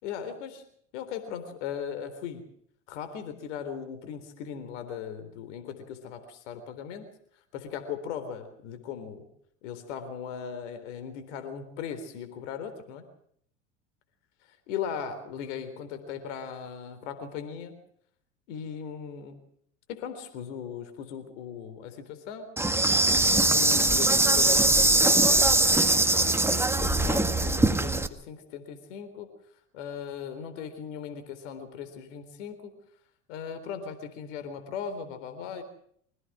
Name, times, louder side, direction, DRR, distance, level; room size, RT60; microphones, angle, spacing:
voice 1, 0.0-0.6 0.9-2.5 2.9-7.1 7.5-9.3 9.6-13.0 14.7-17.8 18.5-19.4 19.9-22.6 23.5-29.3 29.7-32.8 33.3-35.6, left 7 dB, 70° left, 9 dB, 3.9 m, -38 dB
Insect, 22.6-28.1, right 2 dB, 5° right, 1.9 m, -22 dB
25.0 x 17.5 x 6.2 m, 0.65 s
hypercardioid pair, 85°, 37 cm